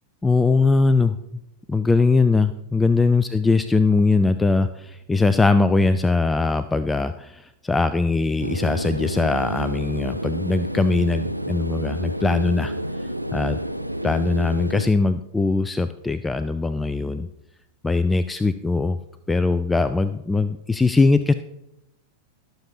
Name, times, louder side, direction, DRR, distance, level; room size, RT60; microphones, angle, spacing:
voice 1, 0.2-1.2 1.7-12.7 13.0-13.6 14.0-17.3 17.8-19.0 19.3-21.3, left 3 dB, 10° left, 12 dB, 0.3 m, -21 dB
sound 1, 8.4-14.9, equal, 90° right, 0.4 m, -29 dB
20.5 x 6.9 x 2.8 m, 0.89 s
figure-of-eight pair, 90°, 0 cm